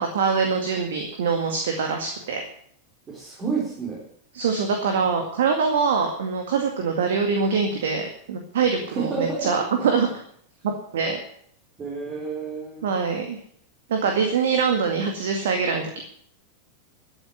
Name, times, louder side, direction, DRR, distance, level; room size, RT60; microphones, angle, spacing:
voice 1, 0.0-2.4 4.3-10.1 10.6-11.2 12.8-13.4 13.9-16.0, right 5 dB, 60° right, 4 dB, 2.1 m, -24 dB
voice 2, 3.1-4.0 8.9-9.6 11.8-12.9, right 4 dB, 25° right, -3 dB, 4.4 m, -30 dB
13.5 x 8.1 x 9.5 m, 0.63 s
figure-of-eight pair, 90°, 0 cm